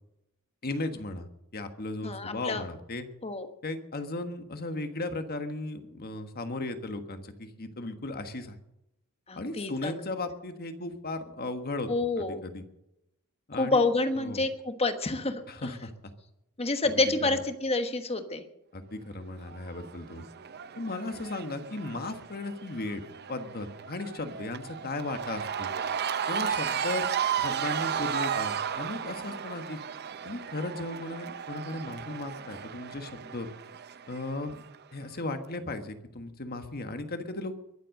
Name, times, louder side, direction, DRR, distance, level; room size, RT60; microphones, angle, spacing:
voice 1, 0.6-3.1 3.6-8.6 9.3-11.9 12.2-12.6 13.5-13.9 14.2-14.4 15.5-15.9 16.8-17.4 18.7-20.3 20.8-23.0 23.3-25.7 26.3-27.1 27.4-29.8 30.2-33.5 34.1-34.6 34.9-37.5, left 2 dB, 45° left, 8 dB, 1.5 m, -36 dB
voice 2, 2.0-2.6 3.2-3.5 9.3-9.9 11.9-12.4 13.6-15.7 16.6-18.4, left 2 dB, 30° left, 8 dB, 1.3 m, -28 dB
Cheering / Crowd, 19.5-34.7, right 8 dB, 50° right, 0.7 m, -34 dB
22.5 x 7.7 x 6.5 m, 0.85 s
head